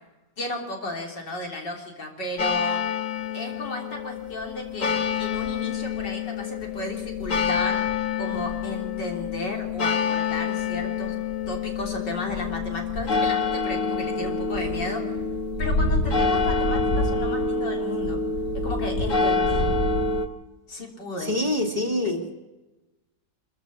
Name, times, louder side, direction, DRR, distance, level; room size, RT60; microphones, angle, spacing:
voice 1, 0.4-2.8 3.3-4.9 5.2-7.8 8.2-11.2 11.5-15.2 15.6-18.2 18.6-19.8 20.7-21.4 22.0-22.3, left 1 dB, 90° left, 1 dB, 4.1 m, -34 dB
sound 1, 2.4-20.3, left 4 dB, 50° left, 1.9 m, -26 dB
voice 2, 21.2-22.2, left 1 dB, 25° right, 4 dB, 2.2 m, -25 dB
24.0 x 15.0 x 7.1 m, 1.1 s
omnidirectional pair, 1.9 m